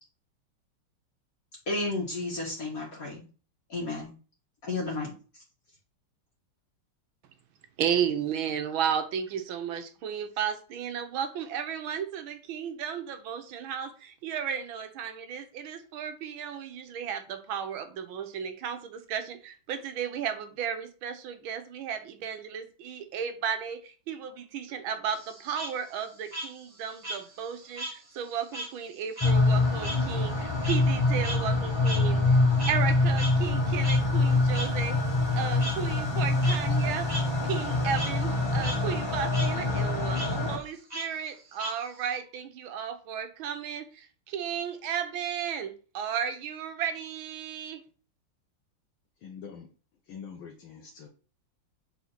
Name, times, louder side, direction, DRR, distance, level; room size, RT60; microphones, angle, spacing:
voice 1, 1.7-3.2 3.7-4.1 4.6-5.1, left 2 dB, 45° left, 2.1 m, -32 dB
voice 2, 7.8-32.4 32.7-35.0 35.4-37.1 37.4-47.8, right 8 dB, 80° right, 1.6 m, -34 dB
Frog, 25.1-28.0 28.3-32.9 33.2-33.3 33.8-34.0 34.5-34.7 35.6-35.7 36.3-36.6 37.1-37.2 37.6-38.1 38.5-38.8 39.1-39.5 40.1-40.3 40.9-42.1, right 1 dB, 20° right, 2.2 m, -37 dB
sound 1, 29.2-40.6, left 2 dB, 20° left, 0.8 m, -25 dB
voice 3, 49.2-49.7 50.1-51.1, left 6 dB, 85° left, 1.7 m, -44 dB
4.5 x 4.2 x 5.8 m
omnidirectional pair, 2.2 m